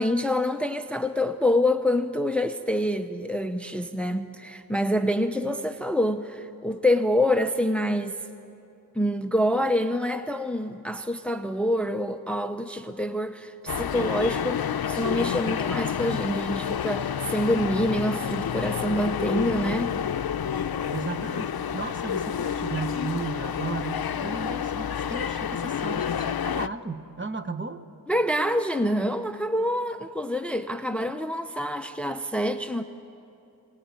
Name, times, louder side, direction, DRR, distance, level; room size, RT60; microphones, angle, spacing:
voice 1, 0.0-8.2 9.0-20.0 28.1-32.8, left 1 dB, 5° left, 0.7 m, -26 dB
sound 1, 13.7-26.7, left 8 dB, 75° left, 0.6 m, -29 dB
voice 2, 20.9-27.8, right 4 dB, 30° right, 1.2 m, -35 dB
25.5 x 19.0 x 9.5 m
wide cardioid pair, 100°, 38 cm